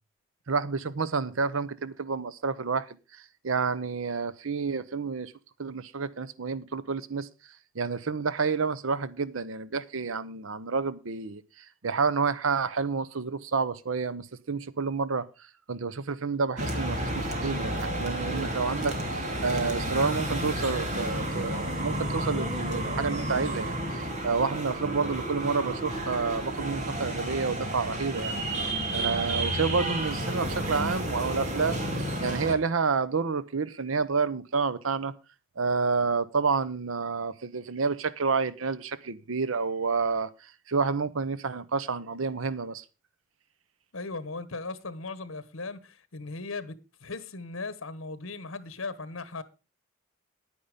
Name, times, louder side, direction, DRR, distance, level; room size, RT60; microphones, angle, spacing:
voice 1, 0.5-5.3 5.6-15.3 15.7-28.4 28.9-31.8 32.2-35.1 35.6-42.8, right 4 dB, 80° right, 0.8 m, -29 dB
sound 1, 16.6-32.6, right 1 dB, 35° right, 2.4 m, -31 dB
voice 2, 43.9-49.4, left 3 dB, 75° left, 1.2 m, -38 dB
10.0 x 9.7 x 5.1 m
head